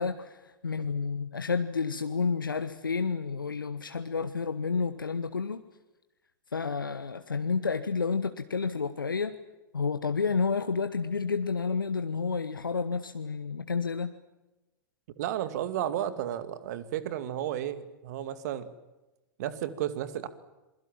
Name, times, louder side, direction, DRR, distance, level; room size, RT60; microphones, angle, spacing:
voice 1, 0.0-5.6 6.5-9.4 9.7-14.1, left 5 dB, 80° left, 9 dB, 1.3 m, -30 dB
voice 2, 15.2-18.7 19.4-20.3, right 11 dB, 50° right, 12 dB, 2.4 m, -33 dB
27.5 x 22.5 x 7.5 m, 1.0 s
figure-of-eight pair, 95°, 11 cm